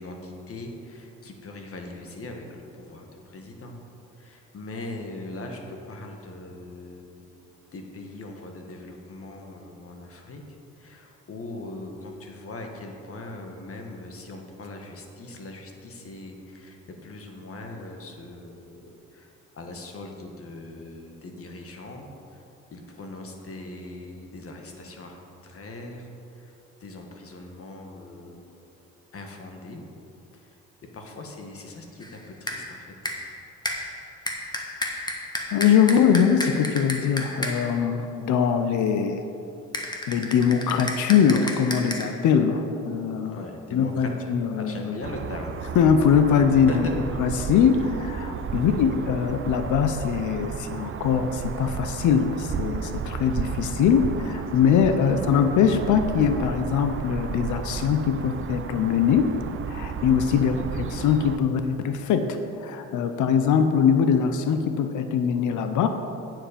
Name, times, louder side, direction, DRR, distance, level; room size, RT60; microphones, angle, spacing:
voice 1, 0.0-3.8 4.2-10.4 10.8-19.3 19.5-22.4 22.7-26.1 26.4-26.5 26.8-28.6 29.1-29.8 30.3-30.5 30.9-32.9 43.2-45.5 46.7-46.9 48.5-48.8 60.3-60.6, left 2 dB, 50° left, 2 dB, 1.5 m, -40 dB
sound 1, 32.0-32.2 32.5-32.7 33.1-33.4 33.6-37.8 39.7-42.1, left 1 dB, 15° left, 1.4 m, -32 dB
voice 2, 35.5-39.2 40.1-43.4 43.7-45.0 45.8-46.9 47.2-59.3 59.7-62.3 62.6-65.9, left 7 dB, 75° left, 8 dB, 0.7 m, -22 dB
sound 2, 45.0-61.4, right 6 dB, 45° right, 0.6 m, -33 dB
9.1 x 7.5 x 5.1 m, 2.8 s
cardioid pair, 90°, 30 cm